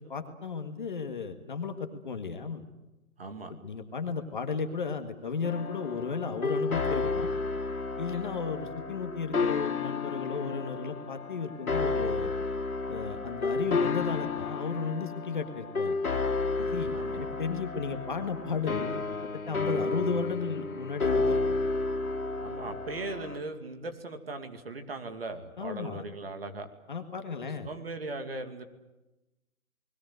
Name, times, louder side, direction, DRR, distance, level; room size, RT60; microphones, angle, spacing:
voice 1, 0.1-2.7 3.5-7.3 8.0-12.3 12.9-16.0 16.6-19.0 19.3-21.4 25.6-26.0 26.9-27.7, left 5 dB, 35° left, 6 dB, 1.8 m, -34 dB
voice 2, 3.2-3.5 16.9-17.2 22.4-26.7 27.6-28.7, right 3 dB, 45° right, 7 dB, 2.6 m, -38 dB
sound 1, 5.4-23.4, left 3 dB, 80° left, 2.9 m, -32 dB
29.5 x 21.0 x 8.0 m, 1.0 s
hypercardioid pair, 175°, 42 cm